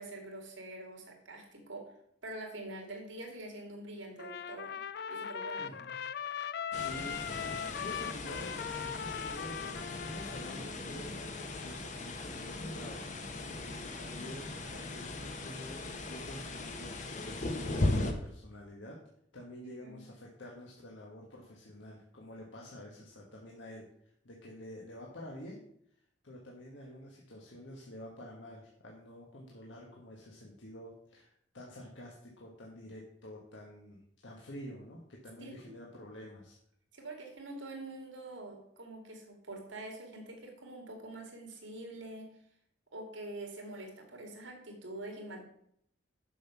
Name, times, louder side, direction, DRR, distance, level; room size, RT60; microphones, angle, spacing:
voice 1, 0.0-1.9 2.2-4.8 5.1-5.7 19.8-20.0 35.4-35.8 36.9-42.3 42.9-45.4, right 2 dB, 85° right, 2 dB, 2.3 m, -45 dB
Trumpet, 4.2-10.8, left 7 dB, 55° left, 0.4 m, -40 dB
voice 2, 5.6-6.0 6.7-11.1 11.6-19.0 19.3-25.6 26.2-36.6, equal, 75° left, -2 dB, 1.4 m, -49 dB
sound 1, 6.7-18.1, left 2 dB, 40° left, 1.0 m, -38 dB
7.2 x 6.0 x 5.8 m, 0.70 s
head